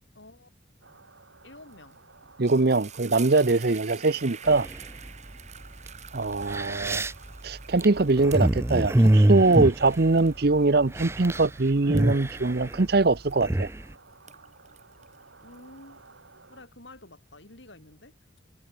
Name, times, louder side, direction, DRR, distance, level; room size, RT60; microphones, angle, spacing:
voice 1, 0.1-0.5 1.4-2.0 15.4-16.2 16.5-18.4, left 2 dB, 70° left, 5.5 m, -50 dB
sound 1, 0.8-16.7, right 3 dB, 80° right, 5.0 m, -55 dB
sound 2, 1.7-1.9 2.2-13.8 14.1-16.1, right 9 dB, 35° right, 3.9 m, -48 dB
voice 2, 2.4-4.7 6.1-7.0 7.4-13.7, right 3 dB, 55° right, 0.8 m, -22 dB
sound 3, 4.5-5.1 5.9-6.0 6.3-10.6 10.8-11.5 11.7-13.8, right 1 dB, 15° right, 0.5 m, -24 dB
head